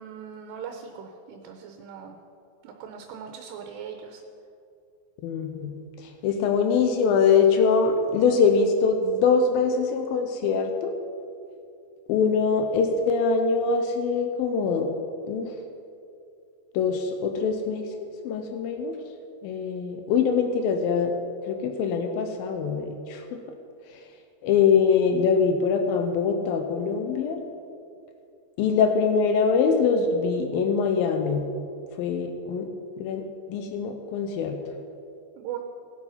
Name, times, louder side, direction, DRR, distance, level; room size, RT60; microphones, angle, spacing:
voice 1, 0.0-2.2 2.6-4.2 35.4-35.6, right 8 dB, 75° right, 4 dB, 2.8 m, -39 dB
voice 2, 5.2-5.7 6.0-10.9 12.1-14.9 15.3-15.6 16.7-19.0 19.4-21.1 21.5-23.4 23.9-24.0 24.4-27.4 28.6-31.5 32.0-32.7 33.0-34.6, left 5 dB, 90° left, 5 dB, 2.0 m, -23 dB
18.5 x 7.8 x 5.7 m, 2.5 s
omnidirectional pair, 5.3 m